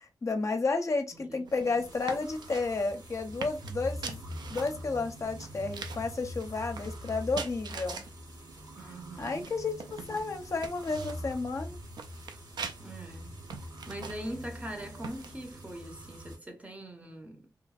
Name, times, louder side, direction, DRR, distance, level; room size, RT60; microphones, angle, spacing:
voice 1, 0.2-4.2 4.5-8.0 9.2-11.8, left 3 dB, 45° left, 0.5 m, -32 dB
voice 2, 1.1-1.9 8.8-9.5 10.0-10.2 12.8-13.4 13.9-17.5, right 1 dB, 20° right, 0.6 m, -42 dB
sound 1, 1.5-15.6, right 5 dB, 80° right, 0.4 m, -45 dB
sound 2, 1.8-16.4, equal, 65° right, 0.9 m, -44 dB
2.8 x 2.6 x 2.3 m
wide cardioid pair, 100°, 7 cm